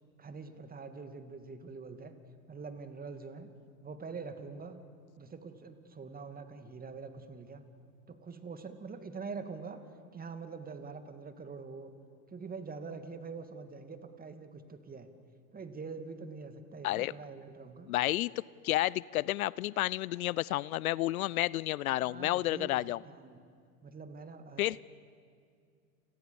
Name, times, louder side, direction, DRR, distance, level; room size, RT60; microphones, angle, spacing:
voice 1, 0.2-2.1 2.5-3.5 3.8-4.8 5.2-7.7 8.1-9.8 10.1-11.9 12.3-15.1 15.5-17.9 22.0-23.5 23.8-24.8, right 4 dB, 20° right, 9 dB, 2.4 m, -44 dB
voice 2, 17.9-18.3 18.6-23.0 24.6-24.8, left 16 dB, 70° left, 23 dB, 0.6 m, -31 dB
30.0 x 28.0 x 7.1 m, 2.3 s
hypercardioid pair, 95°, 44 cm